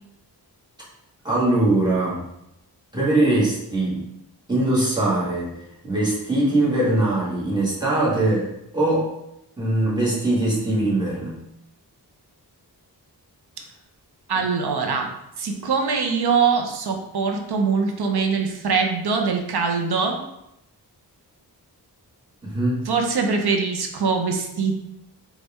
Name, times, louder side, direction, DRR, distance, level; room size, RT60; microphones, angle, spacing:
voice 1, 1.2-2.2 2.9-4.0 4.5-5.5 5.8-9.1 9.6-11.4 22.4-22.8, right 2 dB, 10° right, -7 dB, 1.5 m, -21 dB
voice 2, 14.3-15.1 15.4-20.2 22.9-24.7, right 5 dB, 70° right, 3 dB, 0.7 m, -23 dB
4.0 x 2.4 x 3.5 m, 0.83 s
wide cardioid pair, 85°, 40 cm